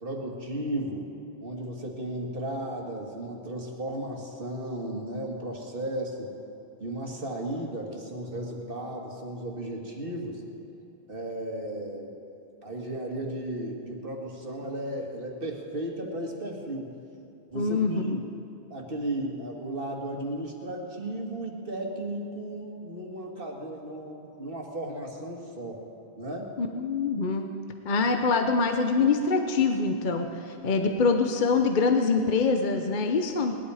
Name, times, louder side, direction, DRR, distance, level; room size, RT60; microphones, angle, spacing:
voice 1, 0.0-1.1 1.4-6.3 6.8-10.4 11.1-12.1 12.6-16.9 17.5-18.2 18.7-25.8 26.2-26.5, right 1 dB, 55° right, 0 dB, 2.1 m, -35 dB
voice 2, 17.5-18.2 26.6-27.4 27.8-33.6, left 4 dB, 50° left, 5 dB, 0.9 m, -24 dB
19.5 x 11.5 x 4.9 m, 2.9 s
omnidirectional pair, 1.1 m